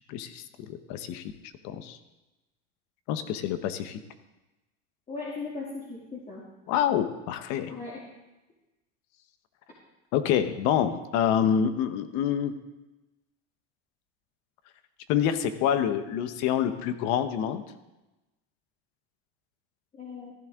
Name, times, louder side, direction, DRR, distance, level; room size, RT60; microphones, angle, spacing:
voice 1, 0.1-1.3 1.6-2.0 3.1-4.0 6.7-7.7 10.1-12.6 15.1-17.6, left 9 dB, 60° left, 10 dB, 1.2 m, -27 dB
voice 2, 5.1-6.4 7.6-8.0 10.4-10.5 19.9-20.3, left 4 dB, 25° left, -5 dB, 2.8 m, -38 dB
15.0 x 11.0 x 3.8 m, 1.0 s
supercardioid pair, 115°, 32 cm